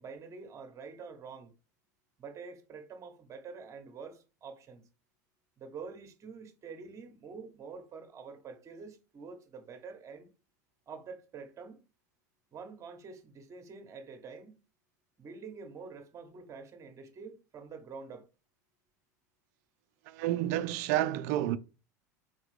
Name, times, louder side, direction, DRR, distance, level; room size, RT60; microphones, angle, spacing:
voice 1, 0.0-1.5 2.2-4.9 5.6-10.3 10.9-11.8 12.5-14.6 15.2-18.3, right 5 dB, 30° right, 1.0 m, -47 dB
voice 2, 20.1-21.6, right 13 dB, 65° right, 0.4 m, -30 dB
4.1 x 3.5 x 3.2 m
hypercardioid pair, 90°, 10 cm